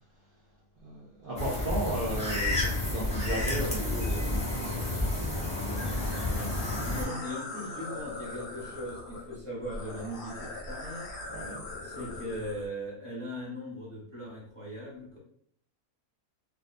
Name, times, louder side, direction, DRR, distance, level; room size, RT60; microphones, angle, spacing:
voice 1, 0.8-5.1 5.6-5.9 11.3-11.6, right 1 dB, 70° right, -4 dB, 0.5 m, -35 dB
sound 1, 1.4-7.0, left 2 dB, 10° left, 0.3 m, -30 dB
sound 2, 5.8-12.6, left 2 dB, 55° left, 0.7 m, -41 dB
voice 2, 6.8-11.1 11.8-15.2, equal, 25° right, -7 dB, 0.9 m, -39 dB
2.6 x 2.2 x 2.4 m, 0.63 s
omnidirectional pair, 1.6 m